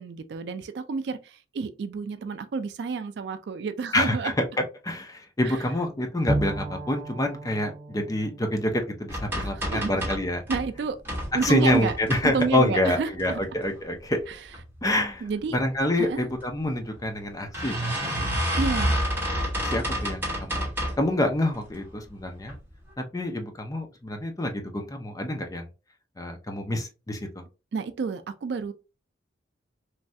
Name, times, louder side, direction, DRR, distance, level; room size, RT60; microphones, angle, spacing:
voice 1, 0.0-4.3 5.4-5.6 9.3-10.0 10.5-11.0 11.3-11.9 12.2-13.4 14.3-14.4 15.2-15.6 16.0-16.2 18.6-19.0 27.7-28.7, right 4 dB, 65° right, 0.3 m, -30 dB
voice 2, 3.9-4.3 4.8-10.4 11.4-14.2 14.8-15.2 15.5-18.6 19.6-20.7 21.0-22.6 23.0-25.7 26.2-27.2, left 1 dB, 20° left, 0.5 m, -27 dB
Bowed string instrument, 6.3-10.0, right 1 dB, 35° right, 1.1 m, -34 dB
sound 1, 9.1-10.7 11.0-12.7 13.1-13.8 14.2-14.6 14.9-15.0 15.3-15.4 16.4-16.5 16.9-17.0 17.5-21.1 21.5-22.0 22.4-22.6 22.9-23.0, equal, 10° right, 1.1 m, -29 dB
3.1 x 2.3 x 2.6 m
head